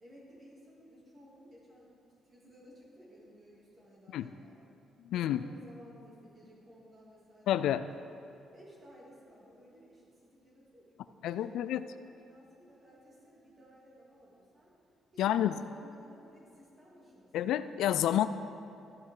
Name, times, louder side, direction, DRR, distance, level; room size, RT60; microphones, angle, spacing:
voice 1, 0.0-2.0 2.2-4.8 5.1-7.9 8.5-14.7 15.1-17.3, equal, 25° right, -5 dB, 3.0 m, -57 dB
voice 2, 5.0-5.4 7.5-7.8 11.2-11.9 15.2-15.5 17.3-18.3, left 11 dB, 80° left, 13 dB, 0.3 m, -29 dB
13.5 x 10.5 x 3.9 m, 2.7 s
cardioid pair, 155°, 0 cm